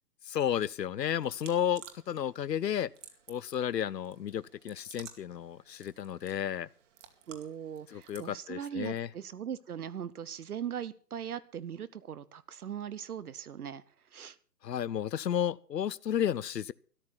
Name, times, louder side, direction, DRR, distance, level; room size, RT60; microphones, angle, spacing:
voice 1, 0.3-2.9 3.3-6.7 7.9-9.1 14.6-16.7, left 9 dB, 90° left, 0.7 m, -32 dB
sound 1, 1.1-8.3, right 8 dB, 50° right, 2.6 m, -55 dB
voice 2, 7.3-13.8 14.1-14.4, right 9 dB, 65° right, 1.0 m, -40 dB
13.5 x 11.5 x 5.9 m
hypercardioid pair, 140°, 48 cm